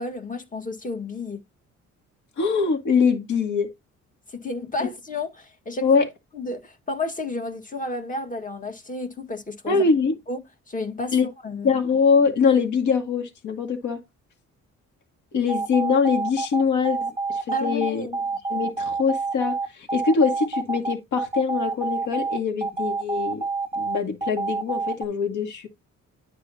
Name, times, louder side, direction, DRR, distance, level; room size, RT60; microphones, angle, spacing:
voice 1, 0.0-1.4 4.3-6.0 6.3-9.8 10.3-11.8 17.5-18.2, left 2 dB, 25° left, 1.8 m, -32 dB
voice 2, 2.4-3.7 4.8-4.9 5.8-6.1 9.7-10.2 11.1-11.3 11.6-14.0 15.3-18.1 18.5-23.5 23.8-25.7, left 5 dB, 75° left, 2.3 m, -23 dB
sound 1, 15.5-25.1, right 4 dB, 20° right, 0.7 m, -27 dB
10.0 x 5.2 x 2.8 m
cardioid pair, 90°, 30 cm